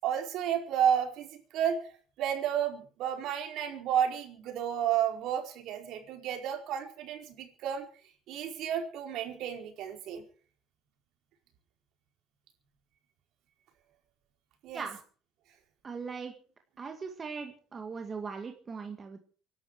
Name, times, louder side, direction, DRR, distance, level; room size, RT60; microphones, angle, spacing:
voice 1, 0.0-1.8 2.2-7.9 8.3-10.2 14.6-14.8, right 9 dB, 60° right, 3 dB, 4.7 m, -31 dB
voice 2, 15.8-16.3 16.8-19.2, right 5 dB, 25° right, 4 dB, 2.0 m, -39 dB
25.0 x 12.0 x 4.9 m, 0.42 s
cardioid pair, 135°, 0 cm